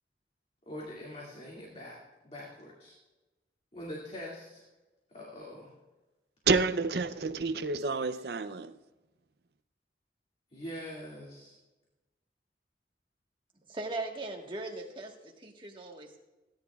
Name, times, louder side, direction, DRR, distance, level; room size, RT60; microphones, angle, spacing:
voice 1, 0.7-2.0 2.2-2.9 3.7-4.6 5.1-5.7 10.5-11.6, equal, 35° left, 2.3 m, -43 dB
voice 2, 6.5-8.7, right 4 dB, 65° right, 0.6 m, -29 dB
voice 3, 13.7-16.2, right 2 dB, 25° right, 1.5 m, -39 dB
27.5 x 10.5 x 2.4 m
head